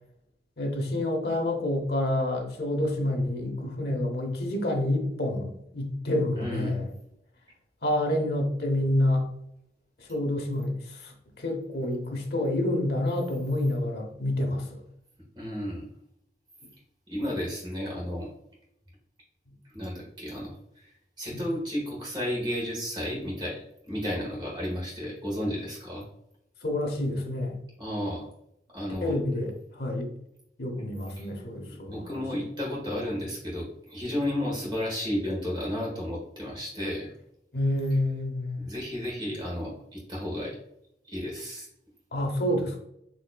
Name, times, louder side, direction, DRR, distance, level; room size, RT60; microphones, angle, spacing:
voice 1, 0.6-6.9 7.8-9.2 10.0-14.8 21.3-21.4 26.6-27.6 29.0-30.1 30.6-32.2 37.5-38.6 42.1-42.8, left 1 dB, 65° left, 1 dB, 0.8 m, -28 dB
voice 2, 6.3-6.8 11.8-11.9 15.3-15.9 17.1-18.3 19.7-20.9 21.2-26.0 27.8-28.3 28.7-29.2 31.2-31.3 31.7-37.1 38.6-40.5 41.0-41.7, left 1 dB, 25° right, -4 dB, 1.4 m, -33 dB
4.2 x 3.0 x 2.2 m, 0.77 s
head